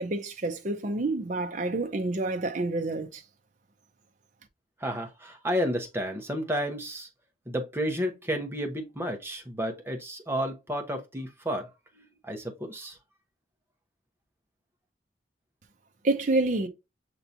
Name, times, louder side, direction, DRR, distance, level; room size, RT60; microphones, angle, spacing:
voice 1, 0.0-3.2 16.0-16.7, right 2 dB, 45° right, 0.6 m, -28 dB
voice 2, 4.8-7.1 7.5-13.0, equal, 15° right, 0.9 m, -32 dB
6.8 x 2.9 x 2.6 m
head